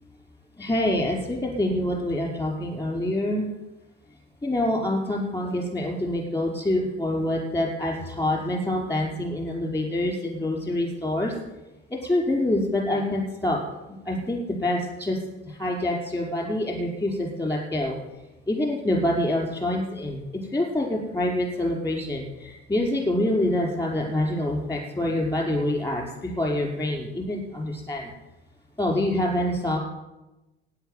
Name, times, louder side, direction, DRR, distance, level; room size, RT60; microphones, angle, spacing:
voice 1, 0.6-3.5 4.4-11.3 11.9-13.6 14.1-15.2 15.5-18.0 18.5-28.1 28.8-29.8, left 1 dB, 15° left, -1 dB, 5.3 m, -26 dB
12.5 x 9.8 x 9.5 m, 1.0 s
hypercardioid pair, 65°, 30 cm